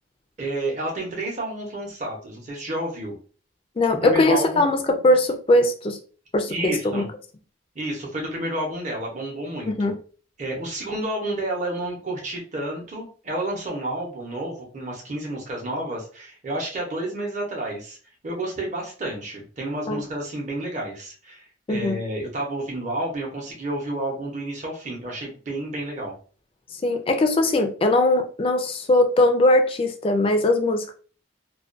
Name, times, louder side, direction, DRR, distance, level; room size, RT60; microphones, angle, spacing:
voice 1, 0.4-3.1 4.0-4.6 6.5-7.1 7.7-9.9 10.4-18.0 18.2-26.2, right 1 dB, 40° right, 0.7 m, -30 dB
voice 2, 3.8-6.0 6.3-7.0 9.7-10.0 19.9-20.0 21.7-22.0 26.8-30.9, left 1 dB, 30° left, 0.3 m, -20 dB
2.3 x 2.1 x 2.4 m
head